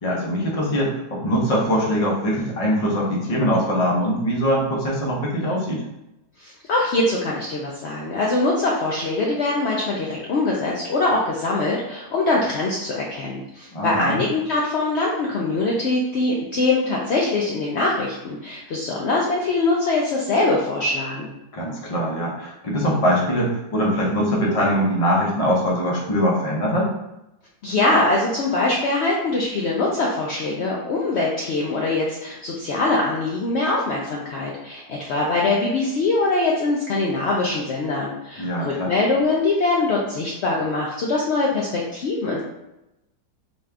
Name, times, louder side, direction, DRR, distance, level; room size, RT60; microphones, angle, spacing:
voice 1, 0.0-5.8 13.7-14.2 21.5-26.9 38.4-38.9, equal, 35° left, -3 dB, 0.6 m, -22 dB
voice 2, 6.4-21.3 27.6-42.4, left 2 dB, 75° left, -3 dB, 0.6 m, -23 dB
4.1 x 2.4 x 3.3 m, 0.92 s
omnidirectional pair, 1.8 m